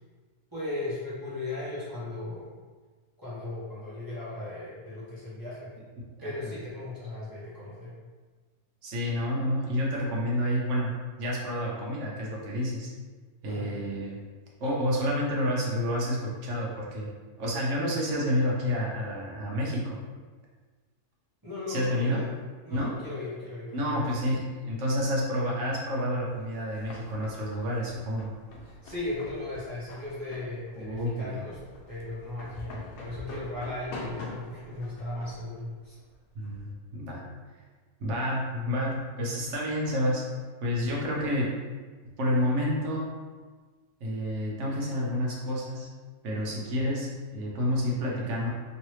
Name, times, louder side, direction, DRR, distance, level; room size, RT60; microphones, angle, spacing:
voice 1, 0.5-2.5 3.2-5.7 6.2-7.9 13.5-13.8 21.4-22.3 22.6-24.2 28.6-31.6 31.9-36.0 46.3-46.7, left 2 dB, 15° right, -10 dB, 0.8 m, -37 dB
voice 2, 8.8-10.9 11.2-12.9 13.4-14.2 14.6-17.1 17.4-20.0 21.7-22.2 22.7-22.9 23.7-28.3 30.8-31.3 36.3-37.2 38.0-40.2 40.6-41.5 42.2-43.1 44.0-45.9 46.2-48.5, equal, 60° right, -3 dB, 1.0 m, -29 dB
sound 1, 26.3-36.7, left 2 dB, 75° left, 1.0 m, -45 dB
3.1 x 2.9 x 3.1 m, 1.4 s
omnidirectional pair, 1.6 m